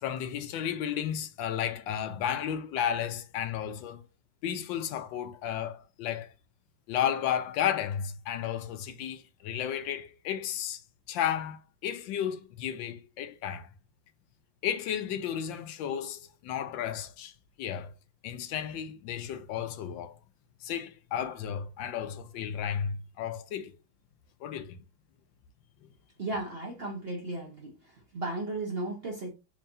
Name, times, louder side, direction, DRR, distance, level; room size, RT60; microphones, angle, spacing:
voice 1, 0.0-4.0 4.4-6.3 6.9-10.8 11.1-13.7 14.6-17.3 17.6-17.9 18.2-20.2 20.6-23.7 24.4-24.8 25.8-25.9, left 9 dB, 80° left, 1.3 m, -33 dB
voice 2, 26.2-27.7 28.1-29.3, right 2 dB, 45° right, 0.8 m, -35 dB
4.5 x 2.7 x 2.6 m
omnidirectional pair, 2.0 m